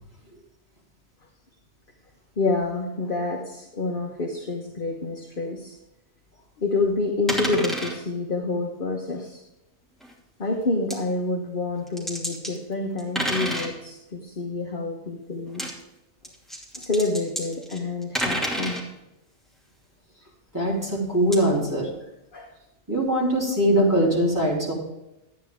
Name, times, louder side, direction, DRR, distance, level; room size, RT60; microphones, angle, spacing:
voice 1, 2.4-5.7 6.6-9.4 10.4-15.6 16.7-18.8 22.3-22.5, left 3 dB, 50° left, 1 dB, 1.4 m, -28 dB
sound 1, 7.3-8.0 10.0-10.1 10.9-11.0 11.9-12.5 13.0-13.7 15.5-15.7 16.2-18.8 21.3-21.4, equal, ahead, 2.7 m, -29 dB
voice 2, 20.5-21.9 22.9-24.7, right 1 dB, 15° right, -6 dB, 3.9 m, -22 dB
13.0 x 9.7 x 3.6 m, 0.93 s
omnidirectional pair, 1.1 m